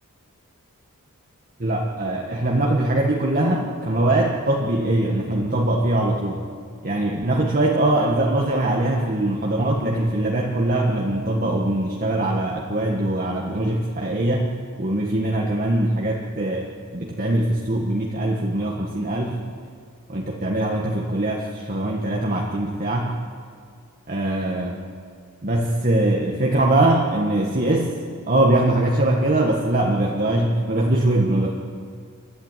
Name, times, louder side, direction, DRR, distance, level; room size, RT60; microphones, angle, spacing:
voice 1, 1.6-6.5 6.8-19.4 20.1-23.1 24.1-24.8 25.4-28.0 28.3-31.5, right 1 dB, 40° right, -1 dB, 1.7 m, -22 dB
29.0 x 12.5 x 9.2 m, 2.2 s
head